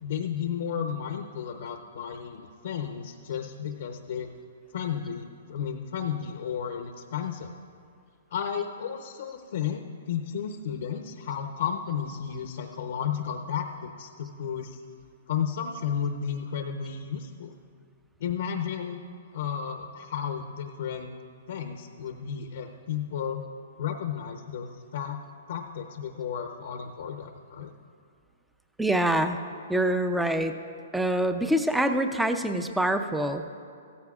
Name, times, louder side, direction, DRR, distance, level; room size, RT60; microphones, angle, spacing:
voice 1, 0.0-4.3 4.7-7.5 8.3-14.8 15.3-17.5 18.2-19.0 19.3-21.1 21.5-23.4 23.8-25.2 25.5-27.7, left 8 dB, 65° left, 5 dB, 0.7 m, -33 dB
voice 2, 28.8-29.4 29.7-30.6 30.9-33.6, right 1 dB, 5° right, 8 dB, 0.5 m, -25 dB
15.5 x 14.0 x 2.4 m, 2.3 s
hypercardioid pair, 145°, 0 cm